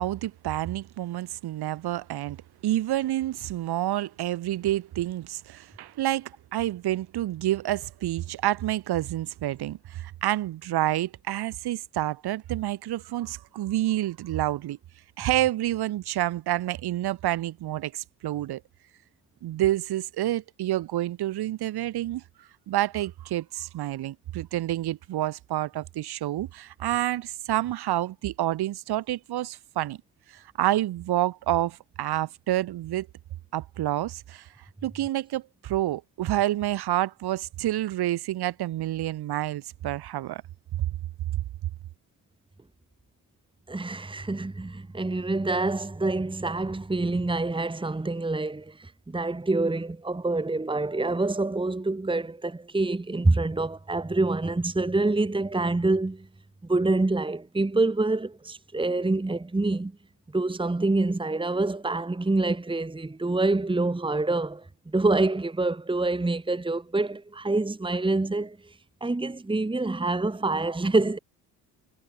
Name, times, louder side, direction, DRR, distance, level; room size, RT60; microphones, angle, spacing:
voice 1, 0.0-2.4 2.6-14.8 15.2-18.6 19.4-22.2 22.7-30.0 30.3-33.1 33.5-34.5 34.8-40.4, right 14 dB, 70° right, 5.4 m, -28 dB
voice 2, 43.7-56.3 56.7-59.9 60.3-68.7 69.0-71.2, right 2 dB, 10° right, 1.9 m, -26 dB
supercardioid pair, 65°, 40 cm